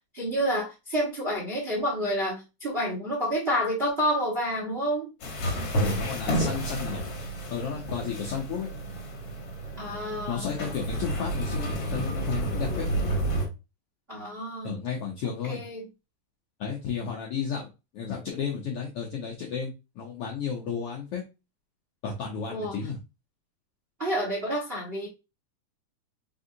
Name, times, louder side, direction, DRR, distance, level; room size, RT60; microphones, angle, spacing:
voice 1, 0.1-5.1 9.8-10.5 14.1-14.7 15.4-15.9 22.5-22.8 24.0-25.1, equal, 80° right, -2 dB, 0.5 m, -29 dB
sound 1, 5.2-13.5, right 1 dB, 60° left, 1.3 m, -30 dB
voice 2, 5.8-7.1 7.5-8.7 10.3-12.9 14.6-15.6 16.6-21.2 22.0-23.0, left 6 dB, 80° left, 0 dB, 1.3 m, -33 dB
4.7 x 3.6 x 2.7 m, 0.27 s
omnidirectional pair, 3.6 m